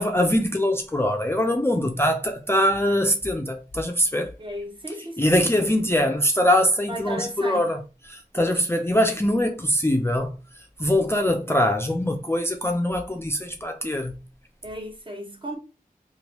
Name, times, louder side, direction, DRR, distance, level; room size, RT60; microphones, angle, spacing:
voice 1, 0.0-4.3 5.2-10.4 10.8-14.1, left 1 dB, 15° left, 0.4 m, -23 dB
voice 2, 4.4-5.3 6.9-7.6 8.3-8.6 14.6-15.6, equal, 35° right, 0.9 m, -34 dB
3.0 x 2.4 x 2.9 m
wide cardioid pair, 60°, 15 cm